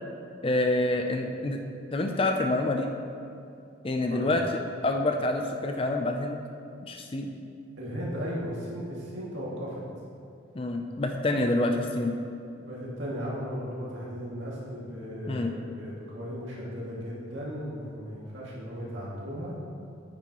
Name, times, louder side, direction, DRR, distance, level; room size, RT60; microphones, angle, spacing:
voice 1, 0.4-1.6 1.9-2.9 3.8-4.4 4.8-6.4 6.8-7.3 10.5-12.2 15.3-15.5, left 2 dB, 25° left, 4 dB, 0.4 m, -27 dB
voice 2, 7.8-9.8 12.6-19.5, equal, 65° right, -6 dB, 2.2 m, -36 dB
9.3 x 9.1 x 3.0 m, 2.5 s
head